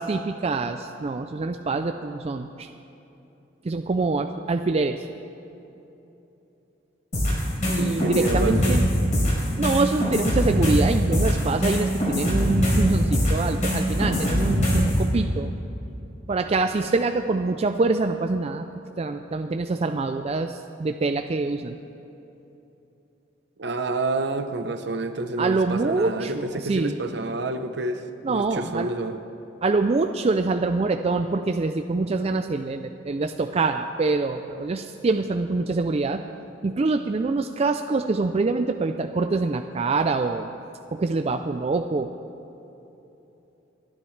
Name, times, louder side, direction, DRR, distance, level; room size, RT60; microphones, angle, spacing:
voice 1, 0.0-2.7 3.6-5.0 7.7-8.8 9.6-15.5 16.3-18.6 19.0-21.8 25.4-27.0 28.2-28.9 29.6-36.2 36.6-40.5 40.9-42.1, right 3 dB, 35° right, 7 dB, 0.4 m, -25 dB
sound 1, 7.1-15.0, equal, 40° left, 3.8 m, -22 dB
voice 2, 7.8-8.8 23.6-29.2, right 2 dB, 65° right, 8 dB, 0.8 m, -29 dB
29.0 x 10.0 x 3.3 m, 2.9 s
head